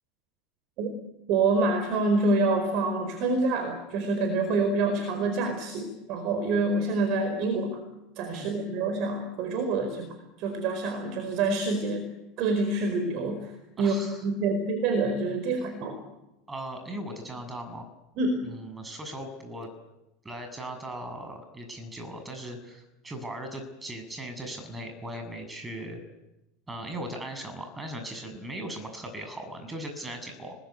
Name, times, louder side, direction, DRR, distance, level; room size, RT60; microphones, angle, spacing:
voice 1, 1.3-7.8 8.1-12.1 12.4-13.5 13.8-16.0 18.2-18.5, right 3 dB, 50° right, 7 dB, 4.7 m, -27 dB
voice 2, 13.8-14.2 16.5-17.9 18.5-19.7 20.2-26.0 26.7-30.6, right 1 dB, 15° right, 6 dB, 7.0 m, -38 dB
29.5 x 20.5 x 9.6 m, 0.98 s
figure-of-eight pair, 80°, 0 cm